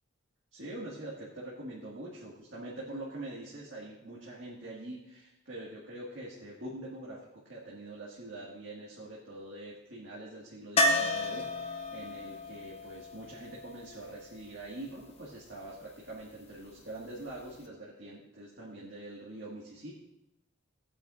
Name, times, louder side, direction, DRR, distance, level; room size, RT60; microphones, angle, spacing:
voice 1, 0.5-19.9, right 1 dB, 60° right, -5 dB, 1.9 m, -44 dB
sound 1, 10.8-14.6 17.3-17.4 17.6-17.7, left 1 dB, 30° left, 0.7 m, -32 dB
18.5 x 8.8 x 2.6 m, 0.88 s
head